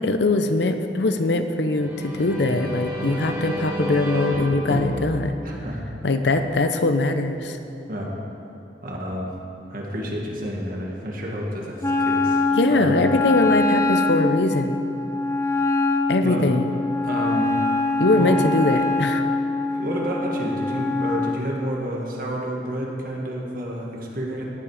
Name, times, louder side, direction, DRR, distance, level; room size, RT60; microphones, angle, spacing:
voice 1, 0.0-5.3 6.0-7.6 12.5-14.8 16.1-16.7 18.0-19.2, left 2 dB, 70° left, 8 dB, 0.7 m, -22 dB
sound 1, 1.6-6.4, equal, 15° right, 1.5 m, -30 dB
voice 2, 5.4-5.8 6.2-6.4 7.9-8.1 8.8-9.3 9.7-12.4 12.7-13.1 16.2-16.5 17.0-17.5 18.1-18.5 19.7-24.4, equal, 50° right, -1 dB, 1.9 m, -30 dB
Wind instrument woodwind instrument, 11.8-21.4, left 3 dB, 15° left, 0.5 m, -23 dB
17.0 x 7.7 x 5.0 m, 2.9 s
head